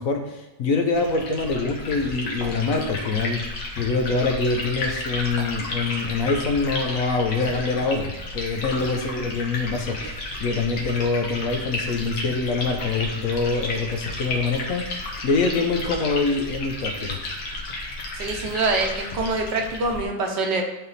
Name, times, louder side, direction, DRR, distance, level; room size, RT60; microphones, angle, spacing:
voice 1, 0.0-3.5 3.8-14.8 15.2-17.2, left 3 dB, 60° left, 4 dB, 1.1 m, -25 dB
Liquid, 0.9-20.0, left 2 dB, 80° left, 1.9 m, -32 dB
voice 2, 18.1-20.6, right 3 dB, 85° right, 2 dB, 1.8 m, -25 dB
10.0 x 3.6 x 4.1 m, 1.0 s
omnidirectional pair, 1.8 m